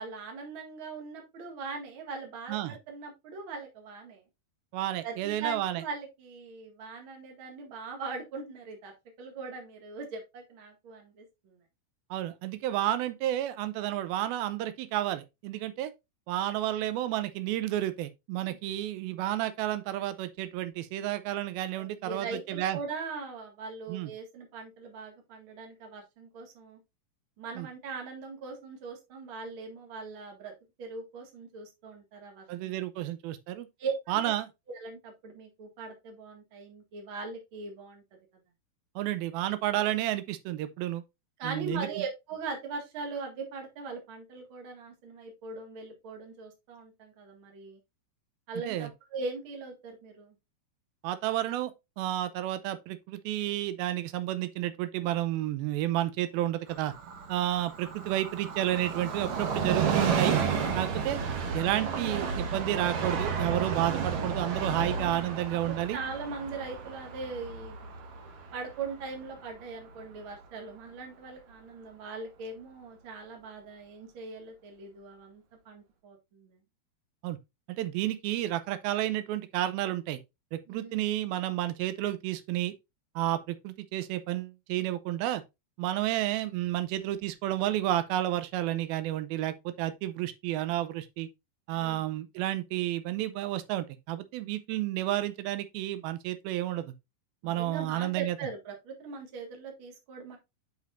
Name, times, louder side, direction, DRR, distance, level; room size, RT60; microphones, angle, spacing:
voice 1, 0.0-4.2 5.0-8.9 9.2-11.6 18.5-18.7 21.8-26.8 27.4-30.5 30.8-32.7 33.8-34.2 34.7-38.0 41.4-47.8 48.5-50.3 65.5-67.9 68.5-76.6 80.7-81.0 91.7-92.0 97.4-100.4, right 4 dB, 45° right, 2.2 m, -40 dB
voice 2, 4.7-5.8 12.1-15.9 16.3-22.8 23.9-24.1 27.6-27.7 32.5-33.7 34.1-34.5 39.0-41.0 41.4-42.0 48.7-48.9 51.0-51.7 52.0-56.9 57.3-60.4 60.7-61.2 61.5-66.0 77.2-77.4 77.7-80.2 80.5-82.7 83.2-85.4 85.8-91.3 91.7-96.9 97.4-98.4, right 13 dB, 85° right, 2.5 m, -31 dB
Train, 56.7-70.0 70.3-70.4, right 6 dB, 70° right, 1.2 m, -32 dB
9.4 x 5.1 x 2.5 m
omnidirectional pair, 4.2 m